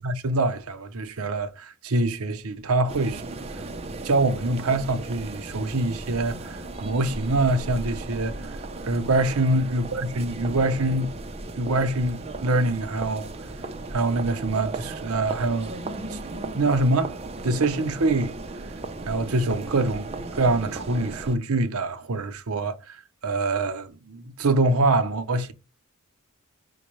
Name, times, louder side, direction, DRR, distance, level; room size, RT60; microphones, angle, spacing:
voice 1, 0.0-3.2 3.5-3.6 4.0-8.5 8.9-11.1 11.6-13.3 13.9-15.7 16.1-17.1 17.4-18.3 19.1-23.0 23.2-25.5, right 2 dB, 80° right, 0.7 m, -25 dB
sound 1, 2.9-21.4, right 2 dB, 30° right, 0.5 m, -36 dB
5.2 x 2.2 x 3.1 m
head